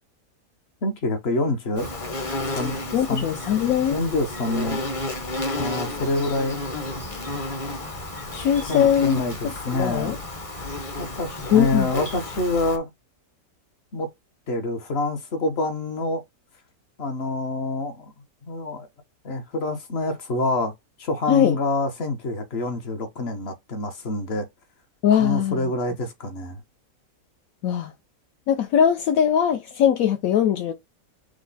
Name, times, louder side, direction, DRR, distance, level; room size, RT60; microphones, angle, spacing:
voice 1, 0.8-1.9 2.5-2.8 3.1-3.3 3.9-4.8 5.5-6.6 8.7-10.2 11.0-12.9 13.9-14.1 14.5-16.2 17.0-18.1 18.4-18.9 19.2-20.7 21.0-24.5 25.2-26.6, left 2 dB, 50° left, 1.0 m, -26 dB
Insect, 1.8-12.8, left 2 dB, 30° left, 0.7 m, -32 dB
voice 2, 2.9-4.0 8.3-10.2 11.5-11.9 21.3-21.6 25.0-25.7 27.6-27.9 28.5-30.7, left 9 dB, 75° left, 1.0 m, -21 dB
6.2 x 2.1 x 3.9 m
omnidirectional pair, 1.5 m